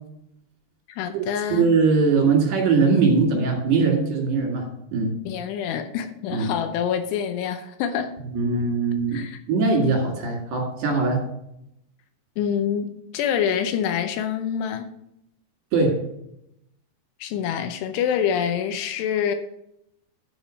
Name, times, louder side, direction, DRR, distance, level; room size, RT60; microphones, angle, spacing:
voice 1, 0.9-1.7 5.3-8.1 9.1-9.4 12.4-14.9 17.2-19.3, left 8 dB, 90° left, 7 dB, 2.9 m, -26 dB
voice 2, 1.5-5.2 6.3-6.5 8.3-9.2 9.5-11.2 15.7-16.1, right 4 dB, 75° right, 0 dB, 4.6 m, -21 dB
12.0 x 5.2 x 5.3 m, 0.78 s
omnidirectional pair, 4.8 m